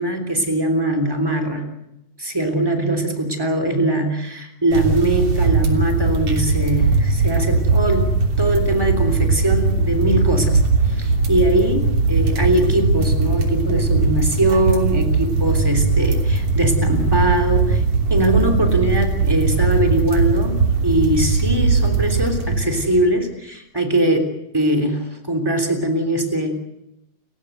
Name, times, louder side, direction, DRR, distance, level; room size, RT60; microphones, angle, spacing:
voice 1, 0.0-1.7 2.2-17.8 18.1-24.3 24.5-26.6, right 1 dB, 5° right, 4 dB, 2.8 m, -21 dB
sound 1, 4.7-23.0, right 4 dB, 60° right, 4.4 m, -19 dB
29.5 x 16.5 x 8.0 m, 0.88 s
omnidirectional pair, 3.8 m